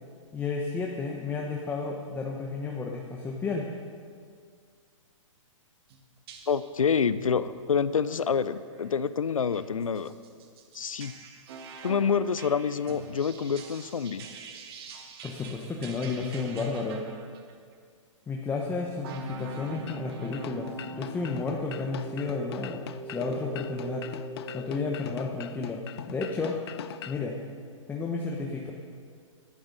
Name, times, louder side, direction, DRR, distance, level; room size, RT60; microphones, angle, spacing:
voice 1, 0.3-3.7 15.2-17.0 18.3-24.1 24.5-26.6 27.1-27.4 27.9-28.7, left 4 dB, 10° left, 0 dB, 0.9 m, -32 dB
sound 1, 5.9-6.0 6.3-6.8 7.2-7.4 7.9-8.1 8.6-8.9 9.5-17.5 18.9-24.9, right 4 dB, 45° right, 1.5 m, -42 dB
voice 2, 6.5-10.1 10.7-11.1 11.8-14.3, left 6 dB, 90° left, 15 dB, 0.6 m, -27 dB
sound 2, 19.9-27.2, left 11 dB, 50° left, 0.6 m, -42 dB
18.0 x 12.0 x 4.0 m, 2.1 s
hypercardioid pair, 130°, 17 cm